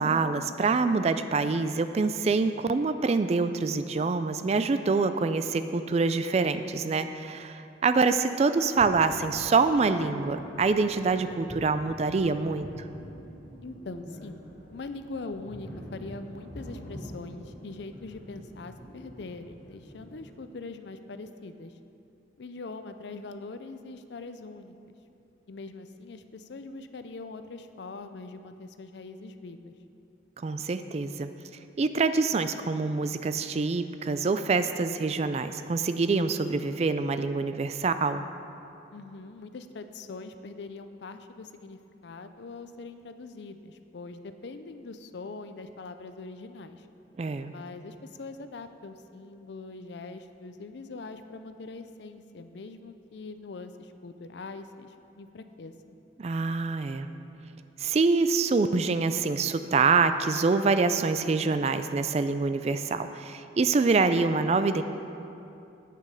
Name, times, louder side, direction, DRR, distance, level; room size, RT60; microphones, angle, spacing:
voice 1, 0.0-12.7 30.4-31.3 31.8-38.2 47.2-47.5 56.2-57.1 57.8-64.8, right 4 dB, 35° right, 10 dB, 0.3 m, -25 dB
sound 1, 8.7-20.3, equal, 45° left, 1.9 m, -45 dB
voice 2, 13.6-14.4 14.7-21.7 22.4-24.9 25.5-29.7 38.9-46.9 47.5-55.7, left 3 dB, 65° left, 9 dB, 0.5 m, -42 dB
8.4 x 7.3 x 5.1 m, 2.7 s
head